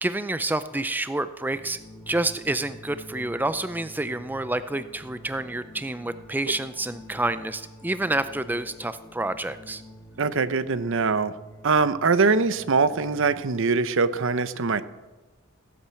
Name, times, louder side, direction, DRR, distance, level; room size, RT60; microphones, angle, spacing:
voice 1, 0.0-1.8 2.1-9.8, right 2 dB, 10° right, 12 dB, 0.4 m, -28 dB
sound 1, 1.5-13.5, equal, 15° left, 1.7 m, -48 dB
voice 2, 10.2-11.3 11.6-14.8, right 4 dB, 60° right, 14 dB, 0.7 m, -22 dB
16.5 x 10.0 x 7.6 m, 1.2 s
head